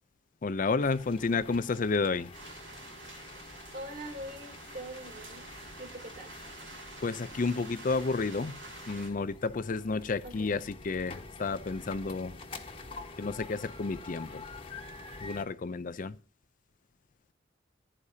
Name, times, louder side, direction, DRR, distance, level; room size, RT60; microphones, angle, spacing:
voice 1, 0.4-2.3 7.0-8.5 8.9-10.6 10.8-12.4 13.2-14.4 15.2-16.2, left 4 dB, 45° left, 0.5 m, -31 dB
sound 1, 0.8-15.4, left 3 dB, 30° left, 1.4 m, -47 dB
sound 2, 2.3-9.1, right 2 dB, 85° right, 6.8 m, -48 dB
voice 2, 3.7-5.5 5.8-6.3 10.2-10.6, right 1 dB, 50° right, 3.1 m, -43 dB
16.0 x 9.9 x 2.8 m
head